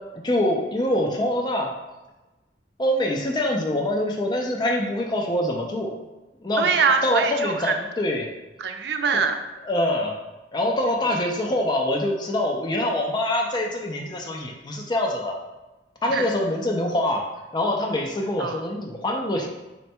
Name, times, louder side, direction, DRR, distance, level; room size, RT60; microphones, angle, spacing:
voice 1, 0.2-1.7 2.8-5.9 6.4-6.7 7.0-8.3 9.7-10.1 10.5-15.4 16.0-17.2 17.5-19.5, left 1 dB, 25° left, 0 dB, 0.4 m, -24 dB
voice 2, 6.6-7.8 8.6-9.4 16.1-16.3 18.4-18.6, right 5 dB, 65° right, 6 dB, 0.4 m, -23 dB
4.3 x 2.2 x 4.2 m, 1.1 s
head